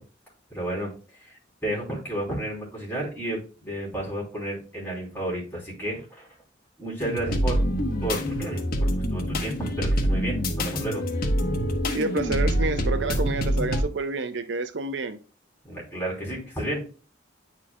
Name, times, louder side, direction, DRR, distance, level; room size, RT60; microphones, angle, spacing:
voice 1, 0.5-0.9 1.2-6.3 6.8-7.6 8.0-11.0 15.6-16.9, right 1 dB, 10° left, 3.2 m, -32 dB
sound 1, 7.0-13.8, equal, 55° left, 1.1 m, -25 dB
voice 2, 11.9-15.2, right 3 dB, 80° right, 0.6 m, -29 dB
9.6 x 4.5 x 2.3 m
head